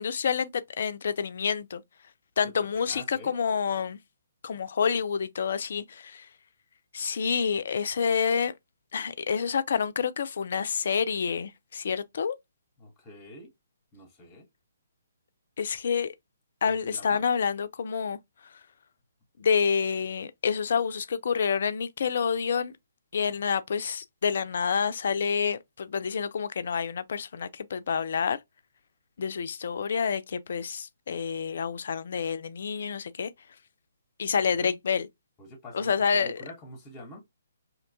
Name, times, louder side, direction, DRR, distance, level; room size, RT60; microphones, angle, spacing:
voice 1, 0.0-1.8 2.4-4.0 4.4-6.3 6.9-8.5 8.9-12.4 15.6-16.1 16.6-18.2 19.4-22.7 23.1-28.4 29.2-33.3 34.2-35.1 35.7-36.4, left 6 dB, 55° left, 0.3 m, -28 dB
voice 2, 2.4-3.4 12.8-13.5 13.9-14.5 16.6-17.2 34.4-34.7 35.4-37.2, left 1 dB, 15° left, 0.7 m, -46 dB
2.8 x 2.2 x 2.5 m
figure-of-eight pair, 130°, 0 cm